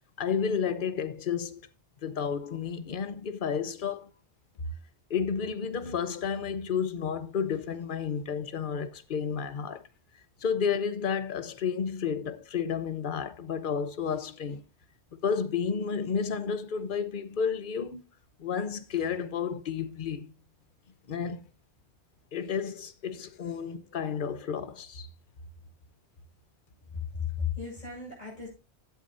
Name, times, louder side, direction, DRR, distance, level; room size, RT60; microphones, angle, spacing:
voice 1, 0.2-1.6 2.0-4.1 5.1-9.8 10.4-14.6 15.2-18.0 18.4-20.3 21.1-21.5 22.3-25.1, left 6 dB, 50° left, 1.0 m, -31 dB
voice 2, 26.9-28.5, left 7 dB, 35° left, 5.8 m, -34 dB
13.5 x 8.6 x 2.6 m
omnidirectional pair, 1.1 m